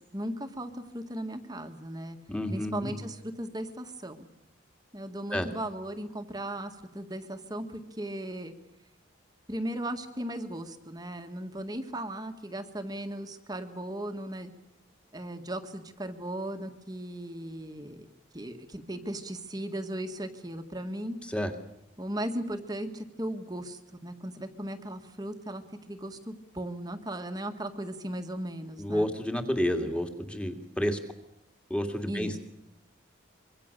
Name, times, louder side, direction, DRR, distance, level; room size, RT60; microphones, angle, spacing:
voice 1, 0.0-2.2 2.5-4.3 4.9-8.6 9.5-14.5 15.1-18.1 18.3-21.2 22.0-25.6 25.9-29.1 32.1-32.4, right 1 dB, 20° right, 6 dB, 1.8 m, -37 dB
voice 2, 2.3-2.9 5.3-5.5 21.3-21.5 28.8-31.0 31.7-32.4, equal, 5° left, 5 dB, 2.4 m, -30 dB
25.5 x 23.5 x 6.8 m, 0.88 s
head